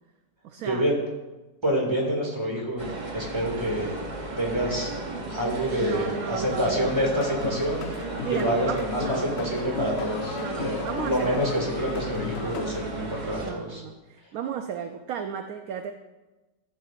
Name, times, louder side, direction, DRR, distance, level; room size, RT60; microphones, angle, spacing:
voice 1, 0.4-0.9 5.7-7.1 8.2-9.3 10.4-11.4 12.4-12.7 13.4-15.9, right 8 dB, 70° right, 7 dB, 0.9 m, -34 dB
voice 2, 1.6-2.9 3.1-3.9 4.4-4.9 5.3-7.8 8.3-10.8 11.0-13.8, equal, 15° right, -2 dB, 2.1 m, -27 dB
sound 1, 2.8-13.5, right 2 dB, 35° right, 0.8 m, -34 dB
sound 2, 7.1-12.8, left 8 dB, 80° left, 0.6 m, -36 dB
13.5 x 8.3 x 2.4 m, 1.1 s
omnidirectional pair, 1.7 m